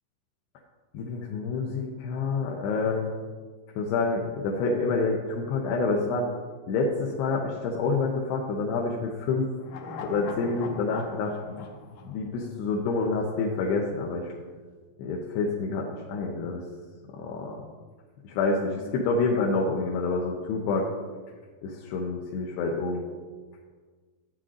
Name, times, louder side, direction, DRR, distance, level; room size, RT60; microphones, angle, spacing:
voice 1, 0.9-3.1 3.8-6.3 6.7-9.5 9.8-11.7 12.0-14.3 15.0-16.6 17.1-17.6 18.2-20.9 21.6-23.0, left 3 dB, 85° left, -1 dB, 3.1 m, -28 dB
sound 1, 9.6-13.0 13.3-13.4, left 5 dB, 70° left, 2.5 m, -42 dB
14.0 x 9.2 x 3.8 m, 1.5 s
omnidirectional pair, 4.7 m